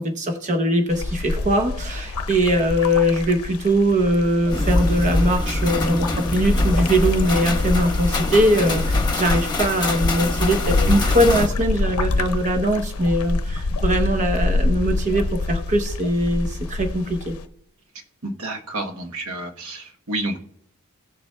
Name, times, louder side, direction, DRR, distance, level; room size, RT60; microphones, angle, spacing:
voice 1, 0.0-17.4, equal, 35° right, 5 dB, 0.8 m, -21 dB
sound 1, 0.9-17.5, left 2 dB, 75° left, 0.6 m, -26 dB
sound 2, 4.5-11.5, left 2 dB, 20° left, 1.0 m, -24 dB
voice 2, 18.2-20.4, right 2 dB, 75° right, 3 dB, 1.1 m, -30 dB
17.0 x 7.1 x 2.2 m, 0.69 s
head